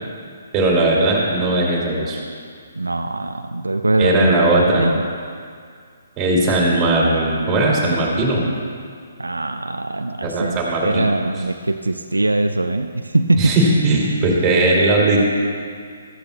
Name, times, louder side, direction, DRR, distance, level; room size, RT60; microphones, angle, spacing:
voice 1, 0.5-2.2 4.0-4.9 6.2-8.4 10.2-11.1 13.4-15.2, right 2 dB, 20° right, -4 dB, 2.7 m, -18 dB
voice 2, 2.8-4.3 4.8-5.0 9.2-13.6, right 2 dB, 80° right, 7 dB, 0.5 m, -21 dB
14.0 x 13.5 x 2.3 m, 2.1 s
figure-of-eight pair, 135°, 0 cm